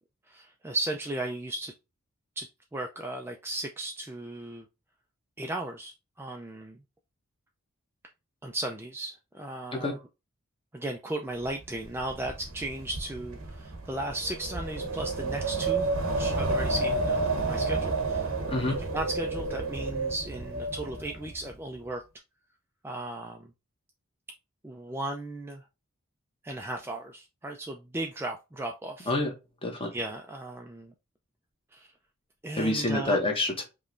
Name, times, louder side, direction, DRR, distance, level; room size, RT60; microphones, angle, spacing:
voice 1, 0.3-1.7 2.4-4.7 5.4-6.8 8.4-10.0 10.7-15.9 16.2-18.4 18.8-22.0 22.8-23.5 24.6-25.6 26.4-29.1 29.9-30.9 31.7-31.9 32.4-33.2, right 1 dB, 10° right, 0.4 m, -36 dB
Wind, 11.4-21.5, right 3 dB, 85° right, 1.0 m, -31 dB
voice 2, 32.5-33.6, left 2 dB, 25° left, 1.2 m, -27 dB
5.2 x 3.0 x 2.5 m
head